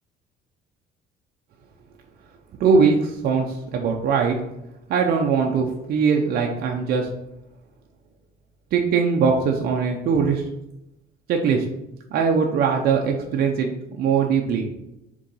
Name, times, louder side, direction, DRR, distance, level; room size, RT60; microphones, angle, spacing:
voice 1, 2.6-4.4 4.9-7.1 8.7-10.4 11.3-11.6 12.1-13.7 14.0-14.7, right 5 dB, 65° right, 1 dB, 0.7 m, -21 dB
4.9 x 3.9 x 5.5 m, 0.87 s
cardioid pair, 110°, 17 cm